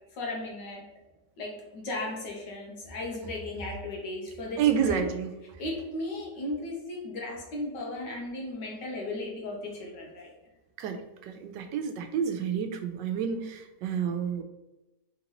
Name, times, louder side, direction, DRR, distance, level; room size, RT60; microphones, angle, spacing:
voice 1, 0.1-0.8 1.4-5.1 5.6-10.3, left 2 dB, 85° left, -1 dB, 1.7 m, -36 dB
voice 2, 4.6-5.3 10.8-14.4, right 7 dB, 85° right, 6 dB, 1.2 m, -29 dB
4.2 x 3.9 x 3.0 m, 0.98 s
omnidirectional pair, 1.8 m